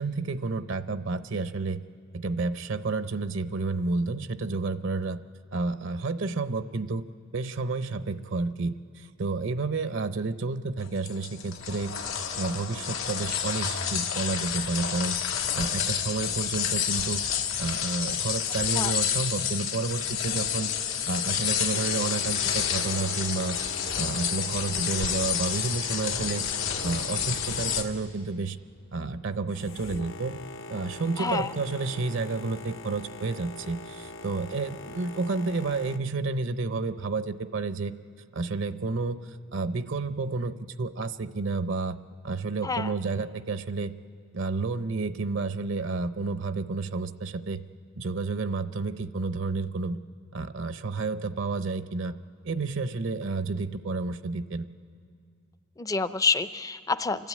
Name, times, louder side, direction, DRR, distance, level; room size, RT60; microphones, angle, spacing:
voice 1, 0.0-1.8 2.1-5.2 5.5-7.1 7.3-12.0 12.3-15.2 15.5-17.2 17.6-20.7 21.1-23.6 24.0-26.4 26.8-28.6 28.9-30.4 30.7-37.9 38.3-42.0 42.2-43.9 44.3-47.6 48.0-50.0 50.3-52.2 52.4-54.7, right 3 dB, 65° right, 12 dB, 0.7 m, -30 dB
sound 1, 10.8-27.8, left 8 dB, 90° left, 1.6 m, -29 dB
Boat Water vehicle, 21.7-36.0, left 2 dB, 65° left, 0.8 m, -43 dB
voice 2, 31.2-31.5 42.6-42.9 55.8-57.3, left 4 dB, 15° left, 13 dB, 0.5 m, -28 dB
29.0 x 12.5 x 8.5 m, 2.4 s
head